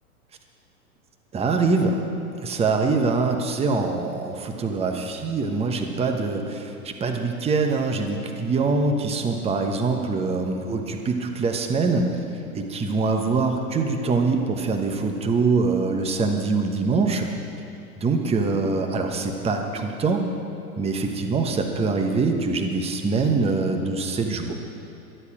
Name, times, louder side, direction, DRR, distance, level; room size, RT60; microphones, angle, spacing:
voice 1, 1.3-2.0 2.4-12.1 12.5-17.3 18.0-20.2 20.8-24.5, right 4 dB, 15° right, 4 dB, 1.2 m, -24 dB
16.5 x 12.5 x 5.0 m, 2.8 s
hypercardioid pair, 110°, 45 cm